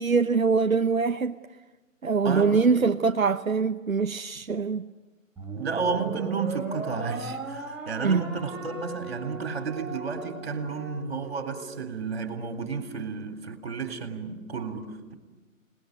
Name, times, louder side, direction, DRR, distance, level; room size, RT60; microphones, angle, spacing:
voice 1, 0.0-1.4 2.0-4.9 8.0-8.3, right 5 dB, 90° right, 1.0 m, -23 dB
voice 2, 2.2-2.9 5.6-15.1, right 5 dB, 50° right, 3.7 m, -32 dB
sound 1, 5.4-11.8, right 3 dB, 5° right, 1.9 m, -38 dB
28.0 x 20.5 x 9.4 m
figure-of-eight pair, 155°, 40 cm